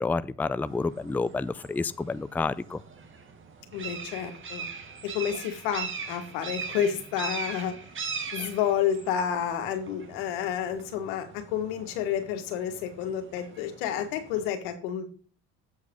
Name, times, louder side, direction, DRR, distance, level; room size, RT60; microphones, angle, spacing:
voice 1, 0.0-2.8, left 3 dB, 5° left, 16 dB, 0.3 m, -29 dB
sound 1, 0.7-14.5, right 5 dB, 45° right, 1.8 m, -41 dB
voice 2, 3.7-4.7 5.0-7.7 8.3-15.1, left 9 dB, 85° left, 7 dB, 1.5 m, -30 dB
8.1 x 4.8 x 5.3 m, 0.41 s
supercardioid pair, 70°, 29 cm